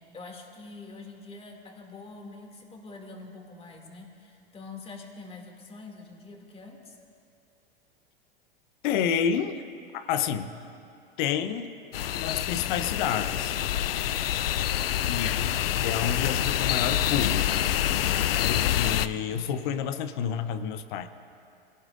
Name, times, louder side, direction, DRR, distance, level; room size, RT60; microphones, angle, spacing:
voice 1, 0.0-7.0, left 3 dB, 20° left, 1 dB, 2.6 m, -45 dB
voice 2, 8.8-9.6 9.9-10.5 11.2-11.8 12.2-13.6 15.0-15.5 15.8-17.7 18.5-21.1, left 8 dB, 55° left, 10 dB, 1.0 m, -29 dB
sound 1, 11.9-19.1, left 11 dB, 75° left, 0.5 m, -26 dB
24.0 x 17.5 x 2.6 m, 2.6 s
hypercardioid pair, 95°, 29 cm